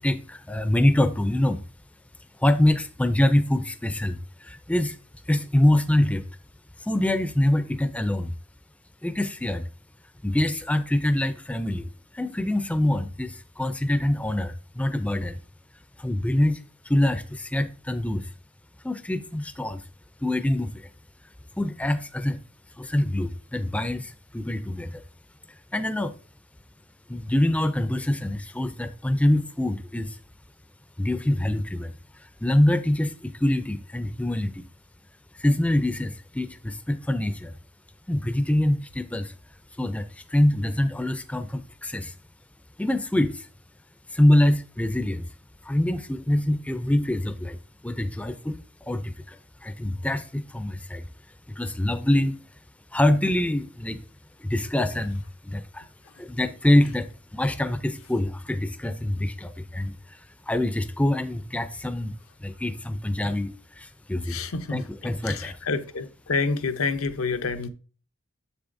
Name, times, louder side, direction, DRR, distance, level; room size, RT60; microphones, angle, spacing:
voice 1, 0.0-1.6 2.4-5.0 5.3-6.3 6.8-8.3 9.0-9.7 10.2-11.9 12.1-15.4 16.0-18.3 18.8-19.8 20.2-20.9 21.6-22.4 22.8-25.0 25.5-26.1 27.1-30.2 31.0-34.6 35.3-37.6 38.1-39.3 39.7-42.1 42.8-43.5 44.1-45.3 45.6-47.6 47.8-51.1 51.5-52.3 52.9-54.0 54.4-55.9 56.2-64.4 64.7-65.6, left 1 dB, 5° left, 0.4 m, -25 dB
voice 2, 64.3-64.8 65.2-67.7, left 4 dB, 85° left, 0.7 m, -28 dB
7.4 x 6.9 x 2.6 m
head